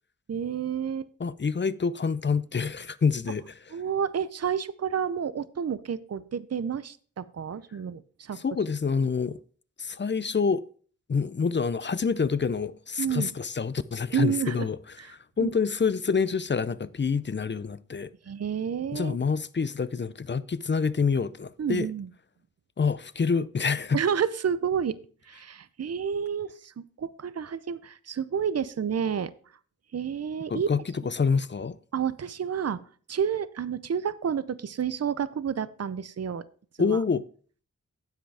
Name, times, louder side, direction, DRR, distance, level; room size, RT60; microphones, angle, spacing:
voice 1, 0.3-1.1 3.7-8.4 13.0-13.3 14.1-14.7 15.0-15.1 15.4-15.5 18.3-19.2 21.6-22.1 23.9-25.0 25.3-29.3 29.9-30.7 31.9-32.8 33.1-36.5 36.8-37.0, right 7 dB, 55° right, 0.6 m, -30 dB
voice 2, 1.2-3.4 8.4-9.4 9.8-10.6 11.1-14.8 15.4-18.1 18.9-21.9 22.8-24.0 30.5-31.7 36.8-37.2, left 5 dB, 40° left, 0.5 m, -27 dB
10.0 x 7.8 x 3.4 m
cardioid pair, 45°, 30 cm